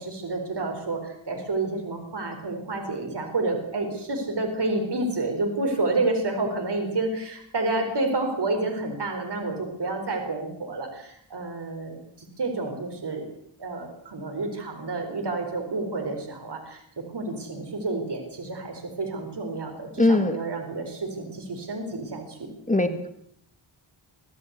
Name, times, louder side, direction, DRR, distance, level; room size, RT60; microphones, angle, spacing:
voice 1, 0.0-13.3 13.6-16.8 17.1-22.5 22.7-23.0, right 2 dB, 55° right, 3 dB, 4.6 m, -29 dB
voice 2, 20.0-20.4 22.7-23.1, left 2 dB, 15° left, 8 dB, 1.7 m, -21 dB
24.0 x 15.0 x 8.3 m, 0.70 s
wide cardioid pair, 125°, 47 cm